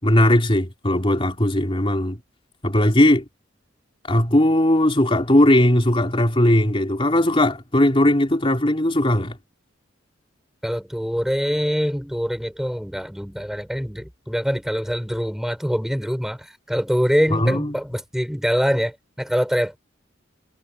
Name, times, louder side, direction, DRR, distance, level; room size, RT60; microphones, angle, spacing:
voice 1, 0.0-2.2 2.6-3.3 4.1-9.4 17.3-17.8, left 1 dB, 30° left, 3.6 m, -18 dB
voice 2, 10.6-19.8, equal, ahead, 7.1 m, -24 dB
head